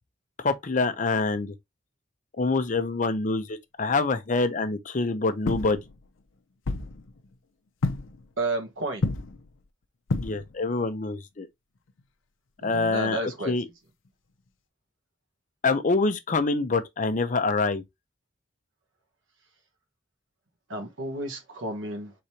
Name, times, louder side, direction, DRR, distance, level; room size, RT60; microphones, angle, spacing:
voice 1, 0.4-1.5 2.4-5.8 10.1-11.5 12.6-13.6 15.6-17.8, left 3 dB, 40° left, 0.6 m, -26 dB
sound 1, 5.4-6.2 6.6-7.3 7.8-8.3 8.9-9.6 10.1-10.7 11.9-12.0 14.0-14.1, left 3 dB, 80° left, 0.6 m, -30 dB
voice 2, 8.4-9.1 12.6-13.5 20.7-22.1, right 2 dB, 80° right, 1.5 m, -31 dB
4.8 x 3.9 x 2.8 m
head